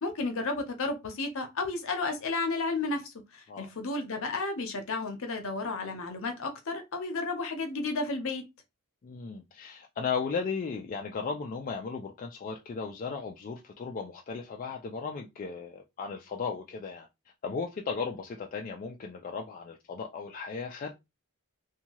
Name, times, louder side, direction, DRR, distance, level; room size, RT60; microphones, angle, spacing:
voice 1, 0.0-8.4, left 3 dB, 65° left, 0.7 m, -32 dB
voice 2, 9.0-17.1 17.4-20.9, left 5 dB, 40° left, 0.3 m, -36 dB
2.7 x 2.2 x 2.9 m
head